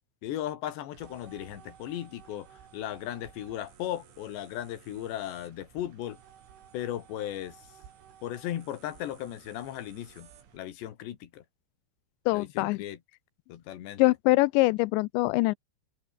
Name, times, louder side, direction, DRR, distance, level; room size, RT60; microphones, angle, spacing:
voice 1, 0.2-2.5 2.7-6.2 6.7-7.6 8.2-11.4 12.3-13.0 13.5-14.0, left 12 dB, 70° left, 4.0 m, -36 dB
sound 1, 0.9-10.6, right 8 dB, 75° right, 6.0 m, -55 dB
voice 2, 12.3-12.8 14.0-15.5, left 23 dB, 85° left, 2.7 m, -23 dB
omnidirectional pair, 5.5 m